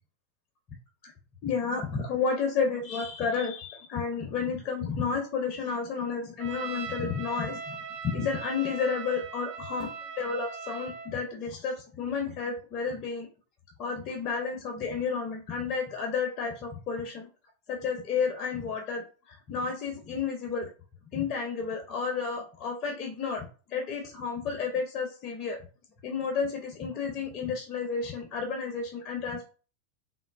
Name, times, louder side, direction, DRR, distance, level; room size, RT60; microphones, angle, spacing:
voice 1, 1.4-7.8 8.0-9.9 10.2-13.3 13.8-17.3 17.7-20.7 21.1-25.6 26.0-29.5, left 5 dB, 35° left, 3 dB, 0.5 m, -31 dB
Trumpet, 6.4-11.1, right 5 dB, 45° right, 0.5 m, -40 dB
3.1 x 2.0 x 2.3 m, 0.38 s
figure-of-eight pair, 90°, 0 cm